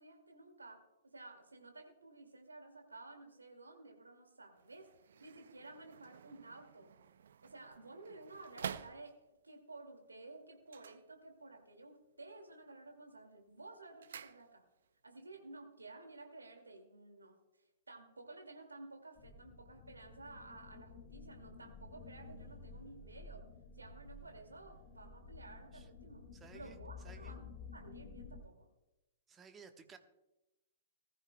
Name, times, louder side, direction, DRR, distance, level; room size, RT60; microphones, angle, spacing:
voice 1, 0.0-4.9 5.2-6.9 7.4-14.6 15.0-23.5 23.7-26.2 26.5-27.4 27.7-28.7, right 2 dB, 80° right, 4 dB, 2.2 m, -54 dB
sound 1, 4.5-9.5 10.6-11.7 12.0-12.5 12.9-14.9 15.2-15.3, right 8 dB, 60° right, 0.5 m, -50 dB
sound 2, 19.2-28.4, left 4 dB, 45° left, 5.0 m, -53 dB
voice 2, 26.3-26.8 27.0-27.4 29.3-30.0, right 5 dB, 20° right, 7 dB, 1.2 m, -56 dB
20.0 x 14.0 x 2.2 m, 0.96 s
figure-of-eight pair, 110°, 0 cm